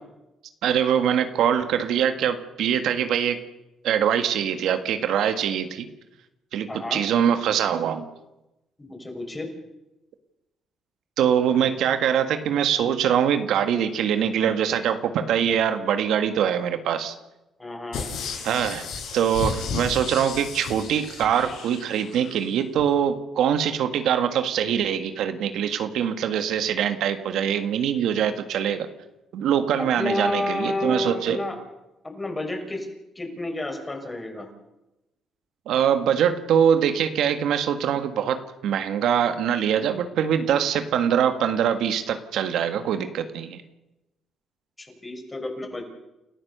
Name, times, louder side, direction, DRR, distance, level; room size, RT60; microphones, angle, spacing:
voice 1, 0.6-3.4 3.8-5.9 6.5-8.1 11.2-17.1 18.4-18.9 19.1-28.9 29.3-31.4 35.7-43.6, right 8 dB, 80° right, 8 dB, 1.7 m, -23 dB
voice 2, 6.7-7.0 8.8-9.5 17.6-18.0 29.8-31.6 32.0-32.9 33.2-34.5 44.8-45.8, left 2 dB, 20° left, 3 dB, 6.1 m, -30 dB
sound 1, 17.9-22.4 22.8-22.9, left 5 dB, 80° left, 5.4 m, -33 dB
29.5 x 14.5 x 6.9 m, 0.96 s
cardioid pair, 90°, 0 cm